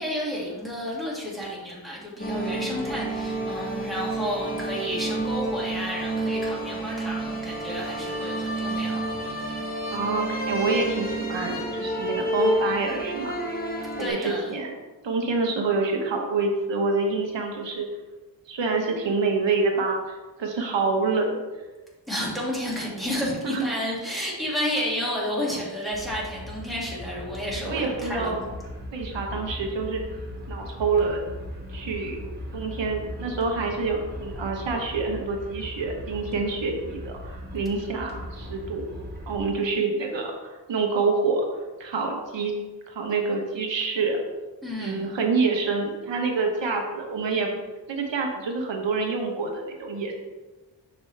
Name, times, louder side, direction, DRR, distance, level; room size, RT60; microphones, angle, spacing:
voice 1, 0.0-9.6 14.0-14.5 22.1-28.4 44.6-45.1, equal, ahead, -5 dB, 2.1 m, -31 dB
sound 1, 2.2-14.1, right 1 dB, 20° left, 1.0 m, -29 dB
voice 2, 9.9-14.7 15.0-17.9 18.5-21.4 23.4-23.6 27.6-28.4 28.9-30.0 30.5-31.2 31.7-32.2 32.5-38.8 39.3-41.4 41.8-42.5 42.9-44.2 44.8-47.6 47.9-50.1, right 4 dB, 85° right, 2 dB, 1.0 m, -27 dB
sound 2, 25.9-39.4, left 1 dB, 25° right, 1.3 m, -38 dB
6.2 x 5.3 x 3.3 m, 1.2 s
wide cardioid pair, 95°, 43 cm